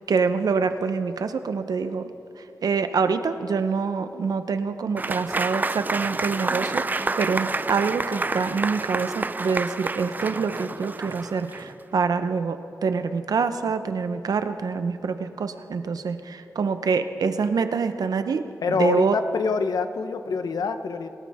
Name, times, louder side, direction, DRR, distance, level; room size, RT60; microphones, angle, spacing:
voice 1, 0.0-2.1 2.4-19.2, right 5 dB, 80° right, 9 dB, 0.8 m, -26 dB
Applause / Crowd, 5.0-11.8, right 3 dB, 30° right, 0.4 m, -29 dB
voice 2, 18.6-21.1, left 5 dB, 85° left, 9 dB, 0.9 m, -25 dB
26.5 x 13.5 x 3.6 m, 2.9 s
wide cardioid pair, 80°, 6 cm